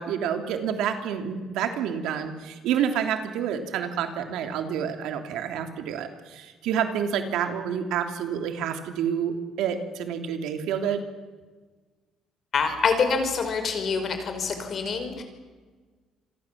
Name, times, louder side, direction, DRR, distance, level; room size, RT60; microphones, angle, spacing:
voice 1, 0.0-11.0, right 8 dB, 85° right, 6 dB, 3.1 m, -28 dB
voice 2, 12.5-15.2, left 5 dB, 45° left, 7 dB, 4.9 m, -26 dB
27.5 x 23.0 x 7.6 m, 1.4 s
cardioid pair, 140°, 0 cm